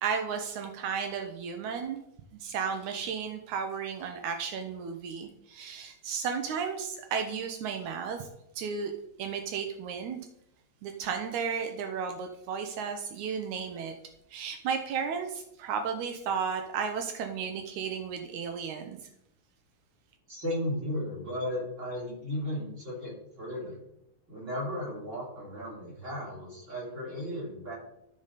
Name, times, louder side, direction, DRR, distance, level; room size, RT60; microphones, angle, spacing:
voice 1, 0.0-2.0 2.3-8.3 8.6-8.9 9.2-10.2 10.8-13.9 14.3-19.0, right 6 dB, 80° right, 4 dB, 2.2 m, -34 dB
voice 2, 20.3-23.8 24.3-27.7, left 1 dB, 25° right, -5 dB, 3.4 m, -35 dB
13.0 x 5.3 x 4.1 m, 0.80 s
omnidirectional pair, 3.4 m